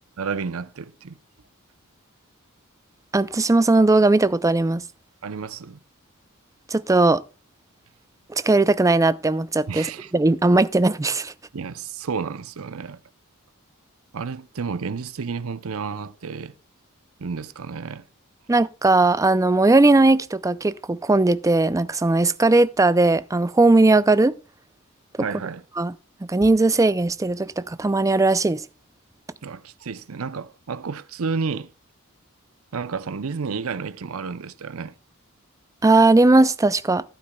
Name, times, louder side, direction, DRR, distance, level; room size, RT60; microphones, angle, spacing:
voice 1, 0.2-1.2 5.2-5.8 9.7-10.1 11.5-13.0 14.1-16.5 17.2-18.0 25.2-25.6 29.4-31.7 32.7-34.9, right 5 dB, 70° right, 0.6 m, -31 dB
voice 2, 3.1-4.8 6.7-7.2 8.3-9.9 10.1-11.3 18.5-24.3 25.8-25.9 26.3-28.6 35.8-37.0, right 2 dB, 15° right, 0.4 m, -18 dB
13.5 x 12.0 x 2.3 m
head